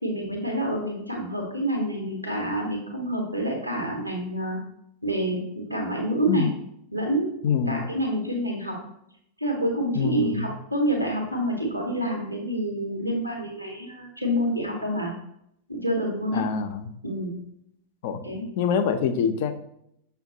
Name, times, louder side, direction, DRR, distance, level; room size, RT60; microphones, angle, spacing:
voice 1, 0.0-4.6 5.0-6.5 6.9-8.8 9.4-15.1 15.7-16.4 17.0-17.3 18.2-18.5, right 1 dB, 85° right, 0 dB, 0.9 m, -28 dB
voice 2, 7.4-7.8 9.9-10.6 16.3-16.9 18.0-18.2 18.6-19.5, left 7 dB, 50° left, 8 dB, 0.4 m, -25 dB
6.3 x 2.2 x 2.7 m, 0.74 s
figure-of-eight pair, 90°, 0 cm